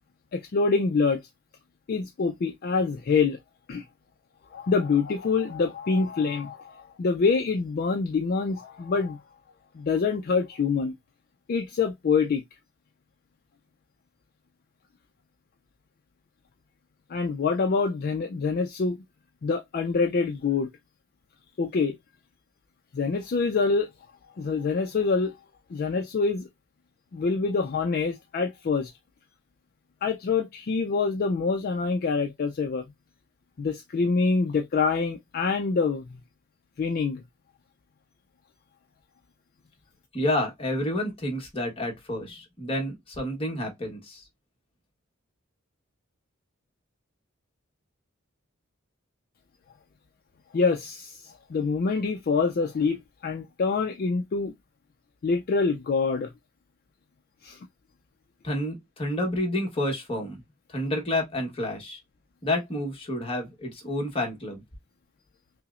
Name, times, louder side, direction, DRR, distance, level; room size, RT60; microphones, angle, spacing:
voice 1, 0.3-1.2 1.9-3.4 3.7-3.8 4.5-9.2 9.7-10.9 11.5-12.4 17.1-19.0 19.4-20.7 21.6-22.0 22.9-23.9 24.4-25.3 25.7-26.5 27.1-28.9 30.0-32.8 33.6-36.0 36.8-37.2 50.5-54.5 55.2-56.3 57.4-57.6, left 4 dB, 45° left, 0.4 m, -25 dB
voice 2, 40.1-44.3 58.4-60.4 60.7-62.0 62.4-64.6, left 1 dB, 25° left, 1.1 m, -29 dB
5.5 x 2.0 x 2.4 m
head